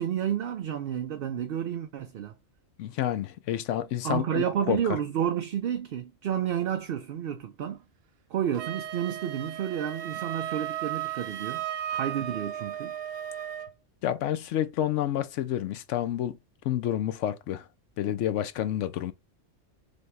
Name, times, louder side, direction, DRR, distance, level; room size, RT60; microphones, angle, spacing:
voice 1, 0.0-2.3 4.0-7.8 8.3-11.6 11.9-12.9, right 9 dB, 60° right, 0.6 m, -30 dB
voice 2, 2.8-4.8 14.0-16.3 16.6-17.6 18.0-19.1, left 11 dB, 75° left, 0.9 m, -29 dB
Wind instrument woodwind instrument, 8.5-13.7, right 11 dB, 85° right, 1.1 m, -35 dB
4.2 x 3.3 x 3.0 m
omnidirectional pair, 1.3 m